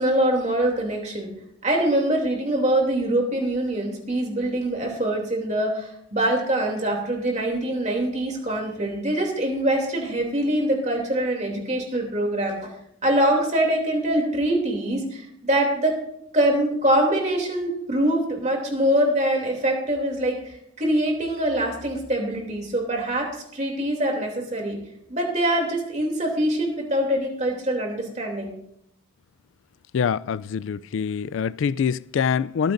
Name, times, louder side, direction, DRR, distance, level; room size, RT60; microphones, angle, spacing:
voice 1, 0.0-1.3 1.6-12.7 13.0-15.9 16.3-24.8 25.1-28.6, right 1 dB, 35° right, 2.9 m, -24 dB
voice 2, 29.9-32.7, left 7 dB, 70° left, 0.3 m, -25 dB
26.5 x 9.1 x 2.6 m
head